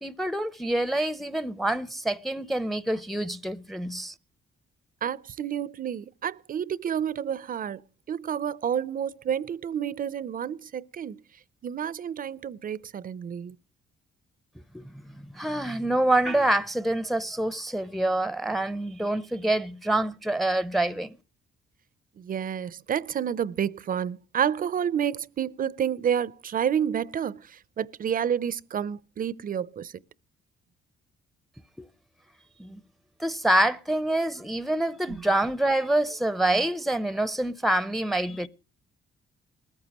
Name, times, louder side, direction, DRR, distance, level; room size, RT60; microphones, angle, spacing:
voice 1, 0.0-4.1 14.7-14.8 15.1-21.1 32.6-32.8 33.2-38.5, right 1 dB, ahead, 0.6 m, -26 dB
voice 2, 5.0-7.8 8.1-11.2 11.6-13.6 22.2-30.0 35.1-35.2, right 8 dB, 45° right, 0.6 m, -29 dB
20.0 x 14.5 x 2.9 m
cardioid pair, 90°, 20 cm